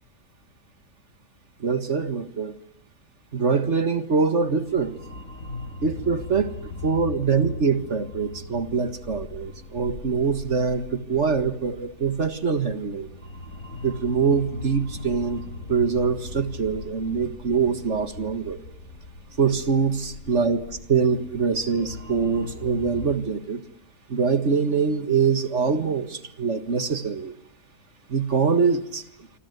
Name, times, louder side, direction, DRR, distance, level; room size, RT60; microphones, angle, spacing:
voice 1, 1.6-2.6 3.3-5.0 5.8-6.6 6.8-13.1 13.8-15.4 15.7-18.6 19.4-23.6 24.1-27.3 28.1-29.0, right 5 dB, 45° right, 10 dB, 1.9 m, -24 dB
sound 1, 4.6-23.1, left 2 dB, 55° left, 4.4 m, -39 dB
28.0 x 25.0 x 8.1 m, 0.74 s
omnidirectional pair, 1.7 m